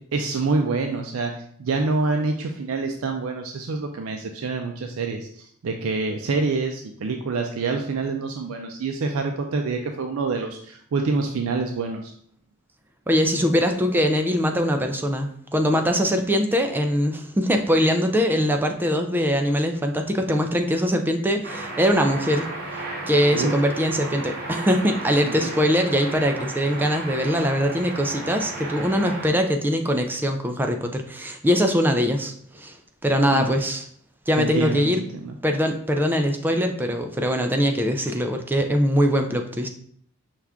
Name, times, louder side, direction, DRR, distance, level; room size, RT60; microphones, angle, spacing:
voice 1, 0.1-12.1 23.3-23.5 25.2-25.5 33.3-33.5 34.4-35.3, right 3 dB, 75° right, 4 dB, 0.4 m, -26 dB
voice 2, 13.1-22.5 23.1-32.8 33.0-33.9 34.3-35.0 35.4-39.7, equal, 10° right, 5 dB, 0.3 m, -22 dB
sound 1, 21.4-29.3, right 2 dB, 50° right, 0.8 m, -34 dB
5.7 x 2.4 x 3.4 m, 0.62 s
head